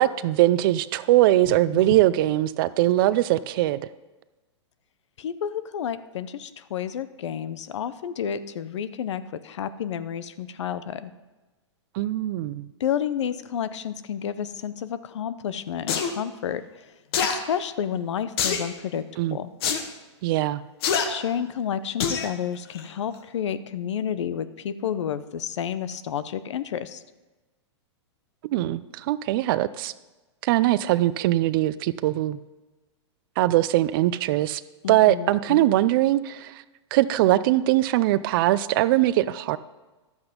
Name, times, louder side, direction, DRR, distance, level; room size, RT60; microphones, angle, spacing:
voice 1, 0.0-3.9 11.9-12.7 19.2-19.4 20.2-20.6 28.4-29.9 30.4-32.4 33.4-34.6 34.9-36.6 36.9-39.6, right 15 dB, 50° right, 16 dB, 0.5 m, -21 dB
voice 2, 1.5-1.9 5.2-11.1 12.8-16.6 17.2-19.0 19.3-19.5 21.1-27.0 34.8-35.7, left 9 dB, 75° left, 14 dB, 0.7 m, -30 dB
sound 1, 15.9-16.1 17.1-17.4 18.4-18.7 19.6-19.8 20.8-21.1 22.0-22.3 22.7-22.8, left 7 dB, 55° left, 1.4 m, -24 dB
12.0 x 8.0 x 5.2 m, 1.2 s
hypercardioid pair, 130°, 15 cm